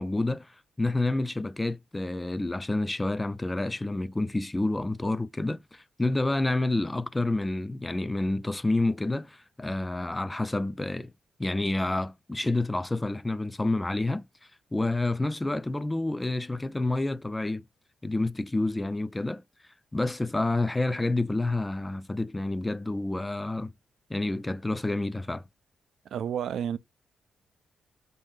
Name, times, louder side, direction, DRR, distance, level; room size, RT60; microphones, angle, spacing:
voice 1, 0.0-11.1 11.4-14.2 14.7-17.6 18.0-19.4 19.9-23.7 24.1-25.4, left 2 dB, 15° left, 0.3 m, -29 dB
voice 2, 26.1-26.8, right 9 dB, 80° right, 0.3 m, -30 dB
3.1 x 2.7 x 3.6 m
cardioid pair, 90°, 0 cm